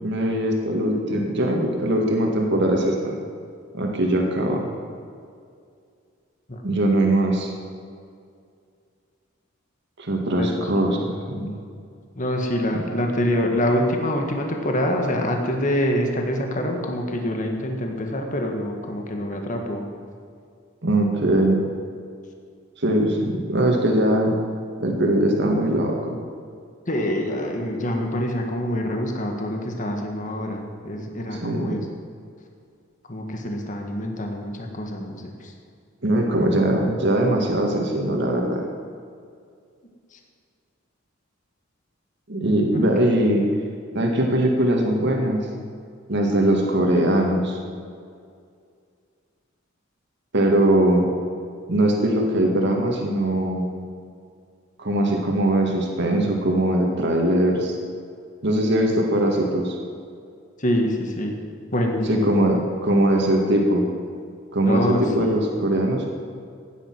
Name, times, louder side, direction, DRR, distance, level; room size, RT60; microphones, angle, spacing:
voice 1, 0.0-3.1 3.7-4.7 6.6-7.5 10.0-11.5 20.8-21.6 22.8-24.4 24.8-26.2 31.3-31.8 36.0-38.6 42.3-43.4 43.9-45.5 46.1-47.6 50.3-51.1 51.7-53.7 54.8-57.8 58.4-59.8 62.1-63.9 64.5-66.1, right 1 dB, 60° right, 1 dB, 2.0 m, -21 dB
voice 2, 10.4-11.0 12.2-19.9 26.9-31.9 33.1-35.5 60.6-61.4 61.7-62.3 64.7-65.3, equal, 40° left, 2 dB, 1.8 m, -25 dB
16.0 x 9.7 x 6.1 m, 2.2 s
head